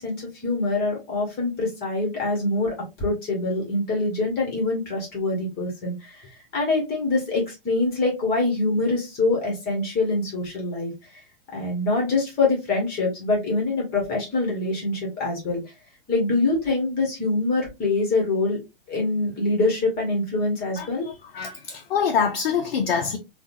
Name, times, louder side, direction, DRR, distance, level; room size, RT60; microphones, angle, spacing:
voice 1, 0.0-11.2 11.5-15.6 16.1-18.6 18.9-21.1, left 2 dB, 30° left, 1.6 m, -25 dB
voice 2, 20.8-23.2, left 6 dB, 70° left, 0.7 m, -25 dB
3.6 x 2.5 x 2.7 m
hypercardioid pair, 120°, 29 cm